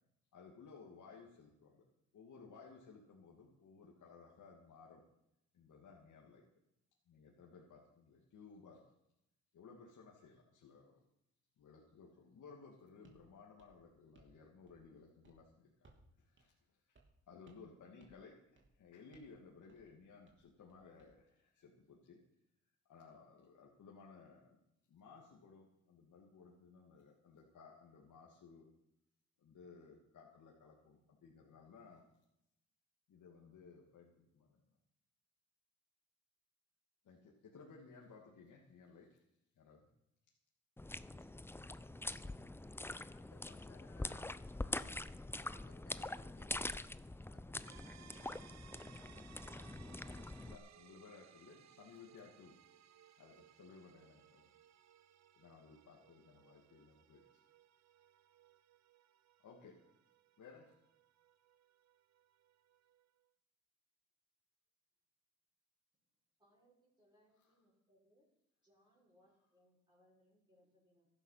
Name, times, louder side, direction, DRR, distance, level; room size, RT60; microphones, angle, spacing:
voice 1, 0.3-1.8 2.1-5.0 5.5-6.4 7.1-8.8 9.5-11.0 11.6-16.8 17.3-22.2 22.9-24.6 24.9-28.7 29.4-32.0 33.1-34.7 37.0-39.2 39.6-39.9 49.1-54.4 55.3-57.2 59.4-59.8 60.4-60.7 67.4-67.5, left 5 dB, 70° left, -2 dB, 2.5 m, -59 dB
sound 1, 13.0-13.3 13.6-14.4 14.7-15.0 15.2-15.4 15.8-16.1 16.4-16.5 16.9-17.2 17.5-17.7 18.0-18.3 18.6-18.8 19.1-19.4 19.7-19.9 20.3-21.1, right 2 dB, 35° right, 3.2 m, -68 dB
sound 2, 40.8-50.6, left 2 dB, 5° left, 0.5 m, -44 dB
voice 2, 42.9-46.7 47.0-47.4, left 7 dB, 50° left, 12 dB, 1.3 m, -66 dB
sound 3, 47.7-63.2, right 10 dB, 55° right, 0.7 m, -64 dB
voice 3, 66.4-68.3 68.6-71.1, equal, 15° right, -5 dB, 5.8 m, -72 dB
14.5 x 12.0 x 5.8 m, 0.82 s
cardioid pair, 70°, 32 cm